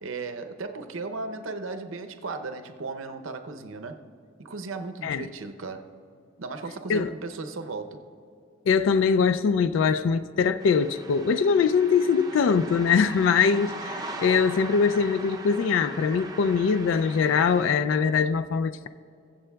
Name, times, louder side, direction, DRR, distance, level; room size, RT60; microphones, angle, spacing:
voice 1, 0.0-4.0 4.4-5.9 6.4-8.0, right 3 dB, 85° right, 0.7 m, -36 dB
voice 2, 8.7-18.9, left 6 dB, 75° left, 0.3 m, -22 dB
sound 1, 10.6-17.8, right 2 dB, 20° right, 0.5 m, -40 dB
22.0 x 7.5 x 2.3 m
head